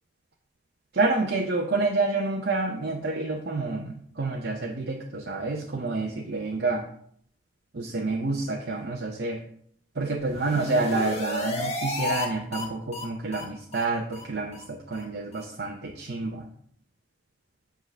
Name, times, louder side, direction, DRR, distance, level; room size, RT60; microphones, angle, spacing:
voice 1, 0.9-3.9 4.2-6.8 7.7-9.4 10.0-16.5, right 3 dB, 65° right, 1 dB, 0.8 m, -28 dB
sound 1, 10.2-12.3 12.5-12.6 12.9-13.0 13.3-13.4 13.7-13.8 14.1-14.2 14.5-14.6 14.9-15.0 15.3-15.4, left 2 dB, 35° left, 1.3 m, -33 dB
7.8 x 3.8 x 6.3 m, 0.65 s
head